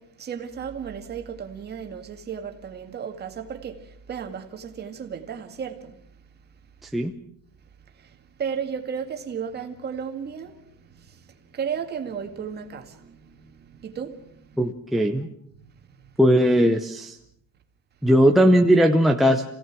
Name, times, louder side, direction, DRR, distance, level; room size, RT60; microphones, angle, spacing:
voice 1, 0.0-6.3 7.8-14.6 15.5-16.1, right 7 dB, 30° right, 2.1 m, -35 dB
voice 2, 14.6-15.3 16.2-17.2 18.0-19.4, equal, ahead, 0.8 m, -18 dB
28.0 x 17.0 x 6.1 m
cardioid pair, 170°, 33 cm